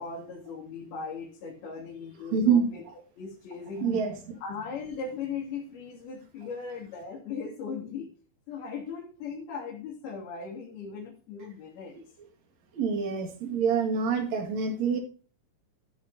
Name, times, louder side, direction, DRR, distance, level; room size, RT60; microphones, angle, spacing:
voice 1, 0.0-2.8 3.2-4.0 4.4-8.1 8.5-12.0, left 5 dB, 85° left, -1 dB, 4.6 m, -38 dB
voice 2, 2.3-2.7 3.8-4.3 12.7-15.0, right 6 dB, 50° right, 2 dB, 3.1 m, -26 dB
14.0 x 7.6 x 2.8 m, 0.39 s
omnidirectional pair, 4.3 m